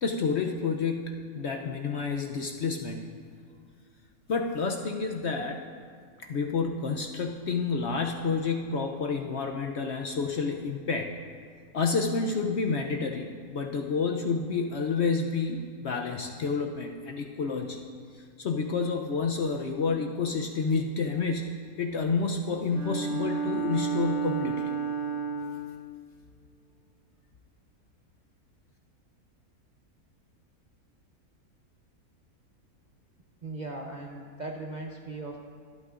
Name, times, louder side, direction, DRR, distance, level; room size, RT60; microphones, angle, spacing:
voice 1, 0.0-3.1 4.3-5.6 6.3-11.2 11.7-17.8 18.1-24.7, left 4 dB, 60° left, 3 dB, 0.7 m, -29 dB
Bowed string instrument, 22.7-25.7, right 5 dB, 5° right, 1.4 m, -31 dB
voice 2, 33.4-35.4, right 2 dB, 45° right, 0 dB, 0.5 m, -38 dB
23.5 x 8.7 x 2.5 m, 2.1 s
omnidirectional pair, 1.6 m